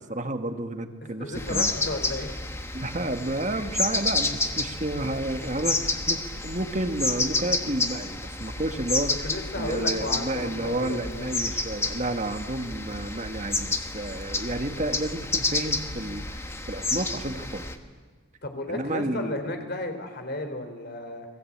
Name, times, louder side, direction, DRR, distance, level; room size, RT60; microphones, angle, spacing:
voice 1, 0.0-1.7 2.7-17.7 18.7-19.4, right 1 dB, 35° right, 6 dB, 1.9 m, -31 dB
voice 2, 1.0-2.3 9.2-11.3 18.4-21.3, left 2 dB, 50° left, 7 dB, 4.1 m, -33 dB
sound 1, 1.3-17.7, left 3 dB, 10° left, 1.4 m, -30 dB
29.5 x 22.5 x 8.8 m, 1.5 s
head